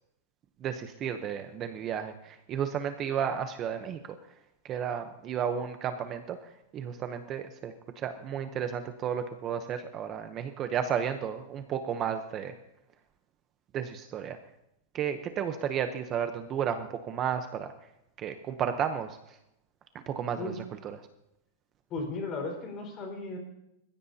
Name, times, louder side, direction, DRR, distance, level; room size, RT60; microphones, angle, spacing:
voice 1, 0.6-4.0 4.6-12.5 13.7-14.4 14.9-17.7 18.2-19.4 20.1-20.5 20.8-21.0, right 8 dB, 25° right, 8 dB, 0.8 m, -33 dB
voice 2, 21.9-23.4, left 3 dB, 30° left, 1 dB, 4.6 m, -35 dB
29.5 x 15.5 x 2.8 m, 0.85 s
supercardioid pair, 160°, 0 cm